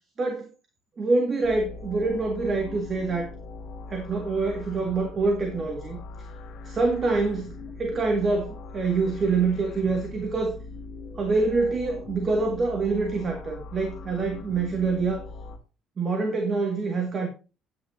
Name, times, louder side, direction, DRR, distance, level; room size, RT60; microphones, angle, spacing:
voice 1, 0.2-0.5 1.0-3.3 3.9-6.0 6.6-10.6 11.2-15.2 16.0-17.3, right 3 dB, 30° right, 2.0 m, -26 dB
sound 1, 1.4-15.6, left 3 dB, 55° left, 2.0 m, -41 dB
10.0 x 9.6 x 2.7 m
cardioid pair, 160°, 0 cm